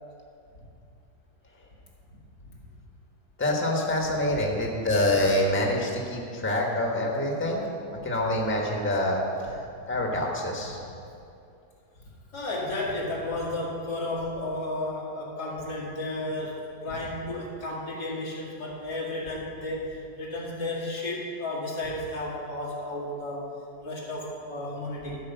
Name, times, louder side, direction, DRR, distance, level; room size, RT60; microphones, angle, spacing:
voice 1, 3.4-7.6 8.0-10.8, left 1 dB, 10° left, -1 dB, 1.2 m, -26 dB
voice 2, 12.3-23.5 23.8-25.2, left 1 dB, 90° left, -5 dB, 2.7 m, -33 dB
13.0 x 5.1 x 6.9 m, 2.6 s
omnidirectional pair, 1.7 m